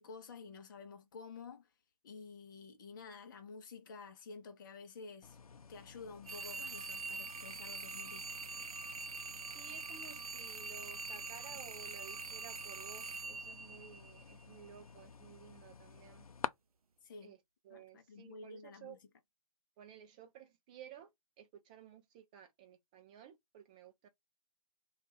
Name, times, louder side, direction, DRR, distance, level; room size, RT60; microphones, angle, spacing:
voice 1, 0.0-1.7 2.0-5.4 5.7-8.3 17.0-17.4 17.7-19.0, left 4 dB, 35° left, 0.7 m, -51 dB
sound 1, 5.2-16.5, left 6 dB, 80° left, 0.4 m, -51 dB
sound 2, 6.3-14.4, right 4 dB, 80° right, 0.4 m, -44 dB
voice 2, 9.5-16.3 17.2-17.4 17.6-19.0 19.8-21.1 21.4-24.1, right 8 dB, 15° right, 0.4 m, -55 dB
2.4 x 2.3 x 3.2 m
figure-of-eight pair, 140°, 18 cm